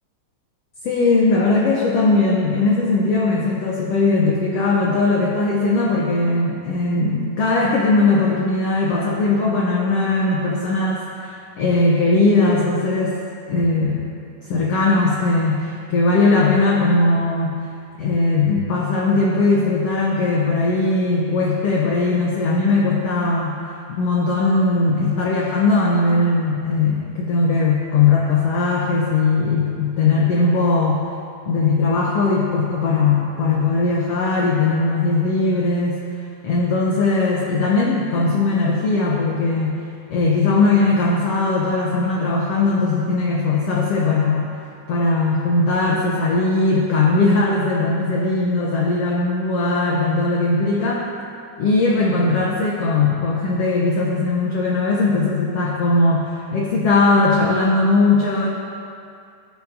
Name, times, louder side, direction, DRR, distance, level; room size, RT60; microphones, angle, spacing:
voice 1, 0.8-13.1 13.5-14.1 14.4-17.6 18.0-23.6 23.9-31.1 31.5-36.0 36.4-39.8 40.1-44.5 44.9-51.1 51.6-58.5, left 3 dB, 80° left, -3 dB, 1.4 m, -19 dB
17.0 x 7.4 x 2.7 m, 2.4 s
omnidirectional pair, 3.9 m